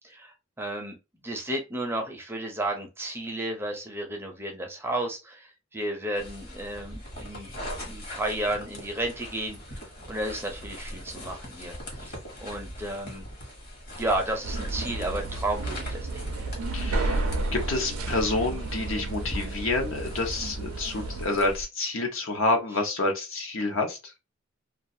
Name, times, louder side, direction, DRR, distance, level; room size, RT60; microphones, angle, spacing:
voice 1, 0.6-1.0 1.2-7.5 7.9-9.8 10.1-13.3 14.0-16.5, right 1 dB, 10° right, 2 dB, 0.5 m, -32 dB
sound 1, 6.1-21.6, equal, 50° left, 1.1 m, -41 dB
sound 2, 14.4-21.2, right 2 dB, 80° right, 0.4 m, -32 dB
voice 2, 16.7-24.0, left 2 dB, 65° left, 3 dB, 0.7 m, -28 dB
2.4 x 2.3 x 2.6 m, 0.26 s
head